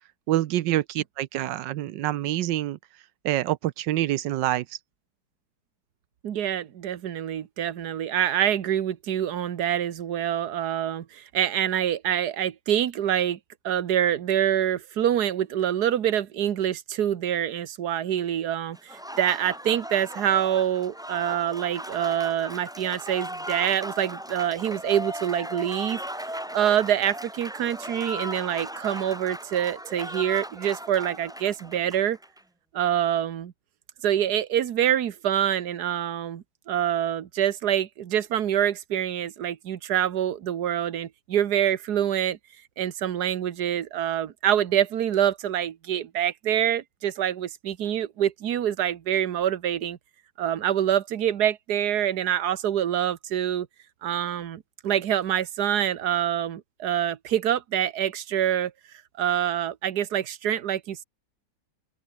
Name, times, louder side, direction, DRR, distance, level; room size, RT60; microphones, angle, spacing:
voice 1, 0.3-2.8 3.2-4.6, right 14 dB, 90° right, 1.4 m, -26 dB
voice 2, 6.2-13.4 13.6-26.0 26.5-32.2 32.7-33.5 34.0-42.4 42.8-50.0 50.4-53.7 54.0-58.7 59.2-61.0, right 10 dB, 65° right, 1.7 m, -26 dB
Applause, 18.7-32.4, equal, 5° right, 0.6 m, -37 dB
open air
omnidirectional pair, 1.9 m